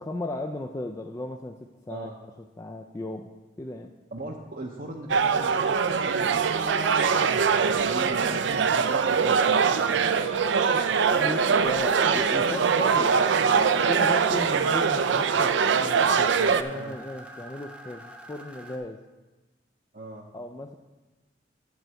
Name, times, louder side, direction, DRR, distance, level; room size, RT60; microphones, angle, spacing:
voice 1, 0.0-1.6 1.9-2.1 2.6-3.3 3.6-3.9 11.1-19.0 20.3-20.7, left 2 dB, 20° left, 2 dB, 0.4 m, -35 dB
voice 2, 4.1-10.1 16.7-17.0 19.9-20.3, right 2 dB, 50° right, 0 dB, 0.7 m, -40 dB
sound 1, 5.1-16.6, right 6 dB, 80° right, 0.4 m, -23 dB
sound 2, 11.2-18.8, right 1 dB, 5° right, 0.8 m, -45 dB
9.4 x 4.5 x 7.6 m, 1.1 s
head